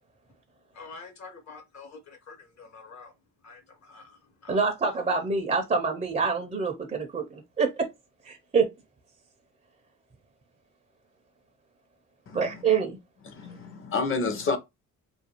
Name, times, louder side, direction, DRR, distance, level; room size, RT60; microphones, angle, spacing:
voice 1, 0.7-3.1 3.4-4.6, left 4 dB, 65° left, 1.1 m, -47 dB
voice 2, 4.5-7.9 8.2-8.7 12.3-13.0, right 5 dB, 25° right, 0.4 m, -26 dB
voice 3, 12.3-12.6 13.2-14.6, left 4 dB, 45° left, 0.6 m, -29 dB
2.4 x 2.3 x 2.8 m
cardioid pair, 90°, 30 cm